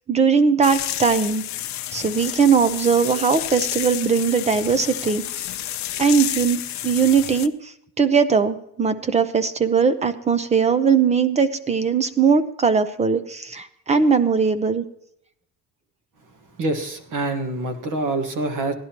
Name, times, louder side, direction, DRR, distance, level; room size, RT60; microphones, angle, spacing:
voice 1, 0.1-1.4 1.9-5.5 6.0-14.8, right 6 dB, 15° right, 12 dB, 0.5 m, -20 dB
sound 1, 0.6-7.5, left 13 dB, 45° left, 0.5 m, -30 dB
voice 2, 16.6-18.7, right 2 dB, 45° right, 7 dB, 1.5 m, -26 dB
16.5 x 11.0 x 2.9 m, 0.73 s
cardioid pair, 175°, 41 cm